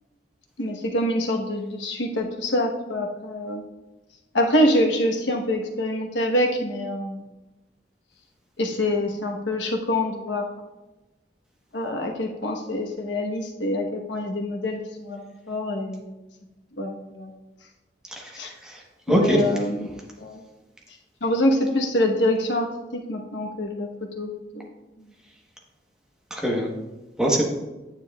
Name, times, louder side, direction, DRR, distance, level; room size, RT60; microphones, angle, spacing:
voice 1, 0.6-3.6 4.3-7.2 8.6-10.5 11.7-16.2 16.8-17.3 18.4-18.5 19.1-20.4 21.2-23.9 24.1-24.7, left 1 dB, 90° left, 2 dB, 1.1 m, -25 dB
voice 2, 18.1-18.8 19.1-19.4 26.3-26.7 27.2-27.4, right 1 dB, 5° right, -2 dB, 1.0 m, -23 dB
9.2 x 6.8 x 2.3 m, 1.1 s
head